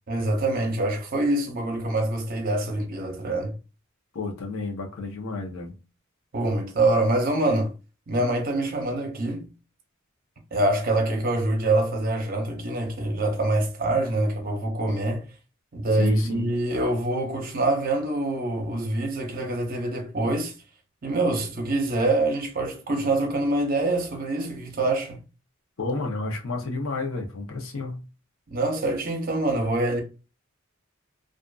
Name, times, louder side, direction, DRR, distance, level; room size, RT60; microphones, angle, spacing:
voice 1, 0.1-3.5 6.3-7.7 8.1-9.5 10.5-15.2 15.7-20.5 21.0-25.2 28.5-30.0, right 2 dB, 45° right, 0.7 m, -25 dB
voice 2, 4.1-5.7 16.0-16.5 25.8-28.0, left 3 dB, 80° left, 0.7 m, -31 dB
2.4 x 2.4 x 2.3 m
head